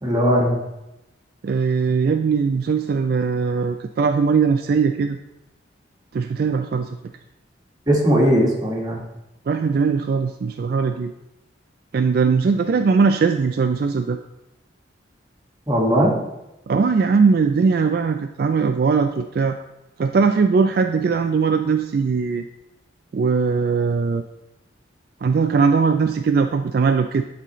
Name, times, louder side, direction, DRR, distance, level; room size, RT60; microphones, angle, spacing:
voice 1, 0.0-0.6 7.9-9.0 15.7-16.1, equal, 20° right, -3 dB, 1.6 m, -18 dB
voice 2, 1.4-5.2 6.1-6.9 9.5-11.1 11.9-14.2 16.7-19.6 20.0-22.4 23.1-24.2 25.2-27.2, right 5 dB, 55° right, 6 dB, 0.3 m, -20 dB
11.5 x 4.1 x 3.1 m, 0.93 s
head